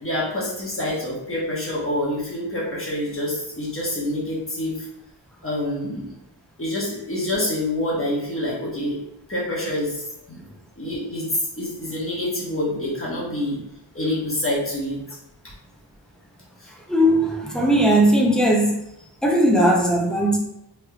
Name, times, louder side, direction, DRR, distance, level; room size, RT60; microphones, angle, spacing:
voice 1, 0.0-4.9 5.4-6.1 6.6-9.0 9.3-10.4 10.8-13.6 13.9-15.0 16.6-16.7, left 1 dB, 30° left, -6 dB, 1.1 m, -27 dB
voice 2, 16.9-18.8 19.2-20.4, right 1 dB, ahead, 0 dB, 0.5 m, -18 dB
3.3 x 3.1 x 2.3 m, 0.84 s
wide cardioid pair, 95°, 45 cm